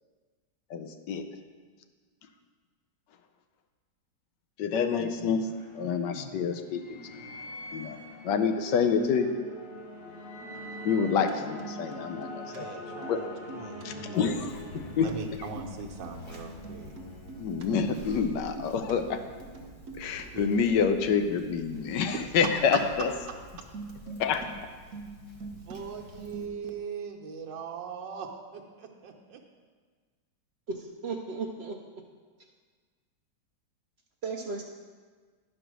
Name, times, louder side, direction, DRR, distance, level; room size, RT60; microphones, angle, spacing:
voice 1, 0.7-1.2 4.6-7.0 7.7-8.0 8.2-9.3 10.8-12.7 13.1-13.2 13.8-14.3 15.0-15.1 17.4-19.2 20.0-23.1 24.2-24.4, left 6 dB, 80° left, 7 dB, 1.3 m, -27 dB
sound 1, 5.1-18.6, left 1 dB, 60° left, 1.7 m, -45 dB
sound 2, 10.8-11.3 11.6-12.6 12.9-13.2 13.5-13.8 14.3-15.1 15.4-16.4 16.6-17.6 17.9-18.3 18.6-18.9 19.4-20.2 20.7-20.9 21.2-21.3 23.7-24.5 24.7-25.8 26.0-26.9, right 3 dB, 55° right, 1.2 m, -44 dB
voice 2, 12.5-14.4 14.7-16.9 20.3-20.5 22.1-22.2 25.7-29.4, right 6 dB, 90° right, 1 dB, 1.5 m, -40 dB
Conversation, 14.1-26.5, equal, 25° left, 0.7 m, -49 dB
voice 3, 30.7-31.8 34.2-34.6, right 4 dB, 70° right, 2 dB, 0.6 m, -35 dB
10.5 x 5.0 x 6.1 m, 1.5 s
omnidirectional pair, 1.9 m